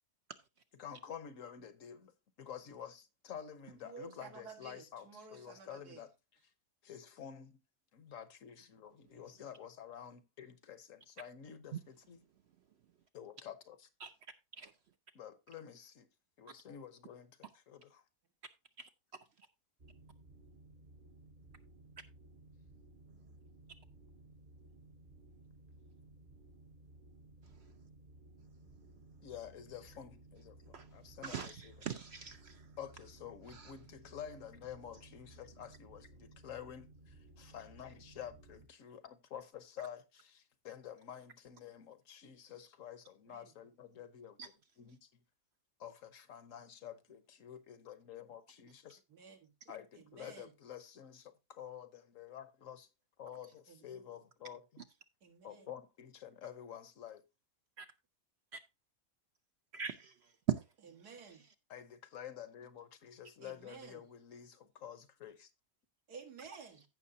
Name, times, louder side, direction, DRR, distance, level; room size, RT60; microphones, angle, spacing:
voice 1, 0.8-2.1 2.4-6.1 6.8-7.6 7.9-12.2 13.1-13.9 15.1-16.1 16.4-18.0 29.2-31.7 32.8-44.4 44.8-45.1 45.8-49.0 49.7-52.9 53.2-54.9 55.4-57.2 61.7-65.5, left 9 dB, 60° left, 1.2 m, -50 dB
voice 2, 3.8-6.0 43.3-43.5 49.1-49.5 50.1-50.5 53.7-54.0 55.2-55.7 61.0-61.4 63.4-64.0 66.1-66.8, right 5 dB, 80° right, 2.2 m, -53 dB
sound 1, 19.8-38.7, right 2 dB, 40° right, 0.9 m, -59 dB
voice 3, 31.2-32.6 33.5-33.7 44.4-44.5 57.8-57.9 59.7-60.1 60.5-60.6, right 9 dB, 60° right, 0.7 m, -39 dB
15.0 x 6.1 x 2.7 m
omnidirectional pair, 1.6 m